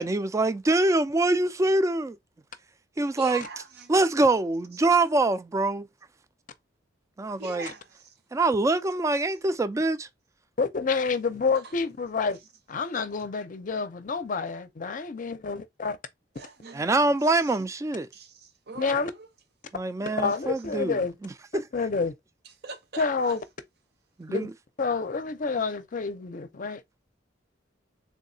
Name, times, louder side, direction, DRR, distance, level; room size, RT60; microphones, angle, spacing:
voice 1, 0.0-2.2 3.0-3.4 3.9-5.9 7.2-7.7 8.3-10.1 16.7-18.1 19.7-21.0 21.2-21.7 24.2-24.5, right 2 dB, 15° right, 0.3 m, -24 dB
voice 2, 3.2-4.1 7.3-8.2 11.6-11.7 16.3-17.6 18.1-19.3 22.4-23.4, right 4 dB, 60° right, 0.6 m, -43 dB
voice 3, 10.6-12.4 12.7-16.0 18.8-19.1 20.2-21.2 21.5-22.1 23.0-23.4 24.3-24.5 24.8-26.8, left 4 dB, 45° left, 0.5 m, -28 dB
3.6 x 2.7 x 2.7 m
head